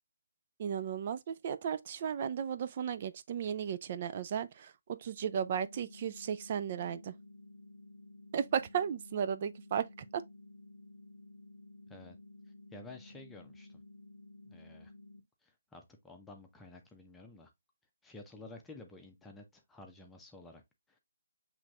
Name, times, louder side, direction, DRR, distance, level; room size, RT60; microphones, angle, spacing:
voice 1, 0.6-4.7 5.0-7.1 8.3-9.9 10.1-10.2, right 8 dB, 40° right, 0.3 m, -35 dB
sound 1, 5.2-15.2, left 2 dB, 85° left, 0.6 m, -54 dB
voice 2, 12.7-13.8 14.4-14.9 15.4-17.5 18.0-20.6, left 2 dB, 5° left, 0.7 m, -52 dB
7.2 x 3.1 x 2.3 m
figure-of-eight pair, 145°, 0 cm